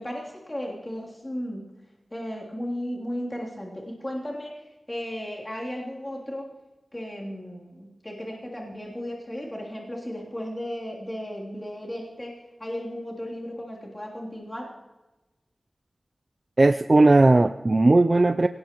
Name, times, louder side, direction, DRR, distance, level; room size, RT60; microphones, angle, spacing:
voice 1, 0.0-1.7 2.1-4.5 4.9-6.5 6.9-14.7, equal, 20° left, -4 dB, 3.1 m, -35 dB
voice 2, 16.6-18.5, right 2 dB, 40° right, 9 dB, 0.4 m, -17 dB
25.5 x 18.0 x 3.0 m, 1.1 s
wide cardioid pair, 90°, 0 cm